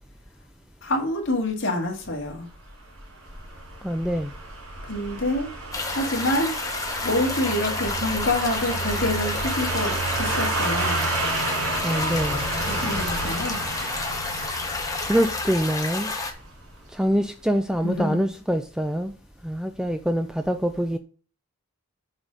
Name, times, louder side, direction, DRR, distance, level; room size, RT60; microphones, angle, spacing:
voice 1, 0.8-2.5 4.9-5.5 5.9-11.1 12.6-13.6 17.8-18.3, left 1 dB, 55° left, 2.1 m, -27 dB
sound 1, 2.2-17.2 17.5-17.6, right 2 dB, 80° right, 3.3 m, -31 dB
voice 2, 3.8-4.3 11.8-12.4 15.1-16.1 16.9-19.1 19.4-21.0, equal, 5° right, 0.4 m, -25 dB
sound 2, 5.7-16.3, left 3 dB, 15° left, 1.1 m, -30 dB
7.9 x 4.1 x 5.2 m
head